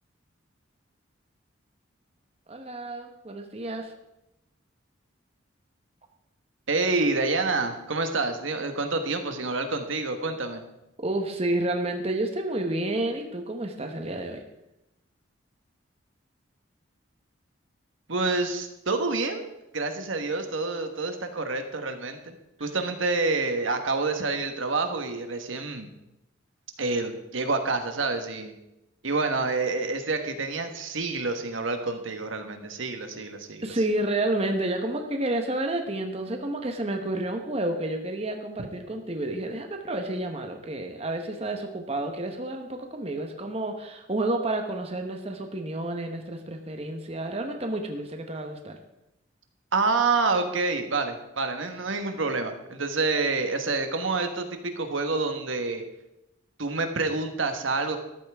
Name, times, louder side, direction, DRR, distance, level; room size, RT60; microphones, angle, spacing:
voice 1, 2.5-3.9 11.0-14.4 33.6-48.8, right 1 dB, 30° right, 4 dB, 1.1 m, -30 dB
voice 2, 6.7-10.6 18.1-22.3 22.6-25.9 26.8-28.5 29.0-33.7 49.7-55.8 56.6-58.0, right 3 dB, 80° right, 6 dB, 1.3 m, -28 dB
14.0 x 12.0 x 3.5 m, 0.89 s
head